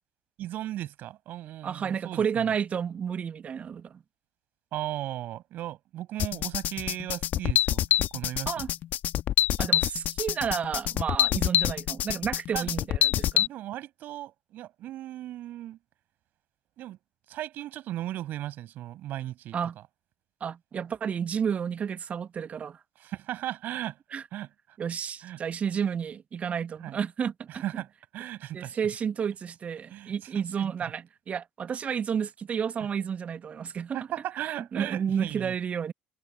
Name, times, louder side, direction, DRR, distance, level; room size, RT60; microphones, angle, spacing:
voice 1, 0.4-2.5 4.7-8.7 12.5-12.7 13.5-15.8 16.8-17.0 17.3-19.6 23.0-24.0 24.3-24.5 25.2-25.4 26.8-27.0 27.5-27.9 28.1-28.8 29.9-30.3 30.6-30.7 32.2-32.3 33.9-35.5, right 13 dB, 55° right, 6.9 m, -36 dB
voice 2, 1.6-4.0 8.5-8.7 9.6-13.5 19.5-19.8 20.4-22.8 24.1-24.2 24.8-27.8 28.5-34.0 34.5-35.9, right 7 dB, 40° right, 2.1 m, -31 dB
sound 1, 6.2-13.5, left 12 dB, 50° left, 1.7 m, -25 dB
figure-of-eight pair, 50°, 4 cm